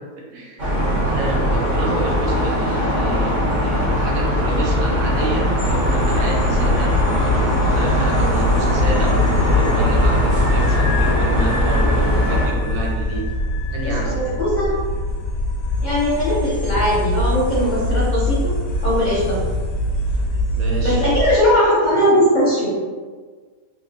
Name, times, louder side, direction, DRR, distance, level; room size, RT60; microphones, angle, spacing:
voice 1, 0.3-0.7 1.1-13.2 13.7-14.3 20.6-21.0, right 2 dB, 75° right, -1 dB, 1.1 m, -29 dB
sound 1, 0.6-12.5, equal, 40° right, 0.8 m, -20 dB
sound 2, 5.6-21.4, left 1 dB, 75° left, 1.0 m, -22 dB
voice 2, 13.8-14.7 15.8-18.5 18.8-19.4 20.8-22.7, equal, 40° left, -8 dB, 0.7 m, -19 dB
3.6 x 2.5 x 2.8 m, 1.5 s
omnidirectional pair, 1.5 m